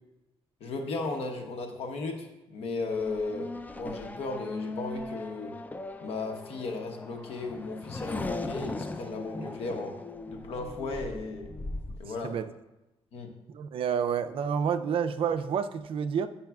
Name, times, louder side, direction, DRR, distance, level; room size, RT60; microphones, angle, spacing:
voice 1, 0.6-5.6 6.0-10.0 10.3-11.5 12.0-12.4 13.1-13.3, left 3 dB, 80° left, 4 dB, 0.9 m, -35 dB
Race car auto racing / Accelerating revving vroom, 2.9-12.0, left 2 dB, 15° left, 0.4 m, -39 dB
voice 2, 12.0-12.5 13.5-16.3, right 7 dB, 65° right, 10 dB, 0.4 m, -29 dB
10.0 x 5.5 x 2.3 m, 0.99 s
cardioid pair, 95°, 10 cm